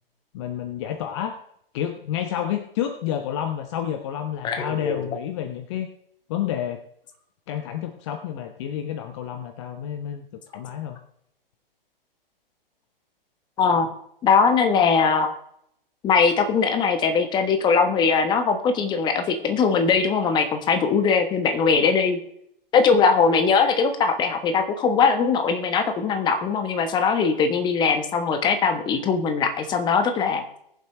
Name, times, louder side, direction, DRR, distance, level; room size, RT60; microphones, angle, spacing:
voice 1, 0.3-1.4 1.7-5.9 6.3-6.8 7.5-11.0, left 10 dB, 30° left, 8 dB, 0.8 m, -30 dB
voice 2, 4.4-5.0 13.6-13.9 14.2-15.3 16.0-22.2 22.7-30.4, left 5 dB, 15° left, 7 dB, 1.2 m, -21 dB
21.5 x 7.3 x 3.2 m, 0.72 s
figure-of-eight pair, 125°, 29 cm